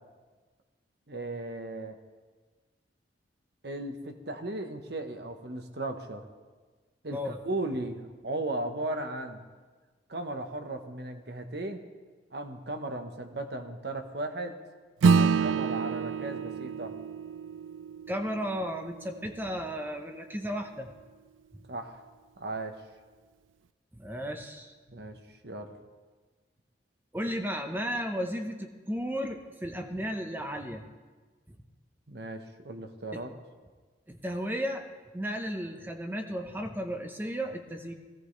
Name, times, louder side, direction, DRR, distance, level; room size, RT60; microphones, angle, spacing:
voice 1, 1.1-2.0 3.6-6.2 7.0-9.4 10.1-11.8 12.3-14.6 15.1-17.0 21.7-22.0 22.4-22.8 24.9-25.2 25.4-25.7 32.1-33.3, right 2 dB, 55° right, 6 dB, 1.2 m, -36 dB
Acoustic guitar / Strum, 15.0-19.8, right 5 dB, 85° right, 0.3 m, -28 dB
voice 2, 18.1-20.9 23.9-24.8 27.1-30.8 31.5-31.6 33.1-33.2 34.1-34.8 35.1-37.9, equal, 10° right, 5 dB, 0.9 m, -34 dB
20.0 x 16.5 x 3.3 m, 1.4 s
head